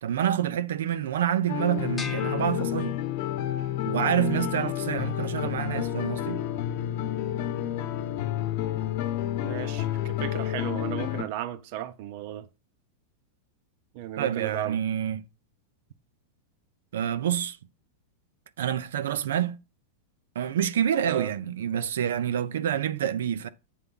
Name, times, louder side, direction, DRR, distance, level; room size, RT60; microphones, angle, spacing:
voice 1, 0.0-3.0 3.9-6.4 14.2-15.2 16.9-17.6 18.6-19.6 20.3-23.5, right 10 dB, 90° right, 0.6 m, -27 dB
sound 1, 1.5-11.2, left 12 dB, 45° left, 0.9 m, -30 dB
sound 2, 2.0-3.5, left 4 dB, 10° left, 0.7 m, -41 dB
voice 2, 9.4-12.5 13.9-14.8 21.0-21.3, right 12 dB, 45° right, 0.6 m, -35 dB
8.4 x 3.5 x 5.4 m
supercardioid pair, 170°, 0 cm